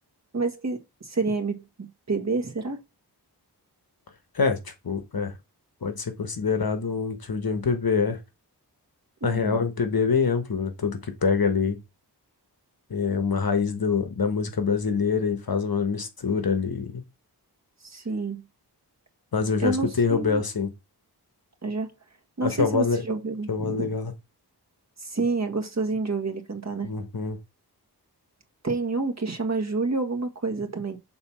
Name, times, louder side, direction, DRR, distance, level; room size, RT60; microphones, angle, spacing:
voice 1, 0.3-2.8 9.2-9.6 17.8-18.4 19.6-20.4 21.6-21.9 22.4-23.9 25.0-26.9 28.6-31.0, right 3 dB, 40° right, 1.6 m, -28 dB
voice 2, 4.3-5.3 5.8-8.2 9.2-11.8 12.9-17.0 19.3-20.7 22.4-23.0 23.5-24.1 26.8-27.4, left 5 dB, 60° left, 1.3 m, -25 dB
7.0 x 3.9 x 5.6 m
wide cardioid pair, 80°, 40 cm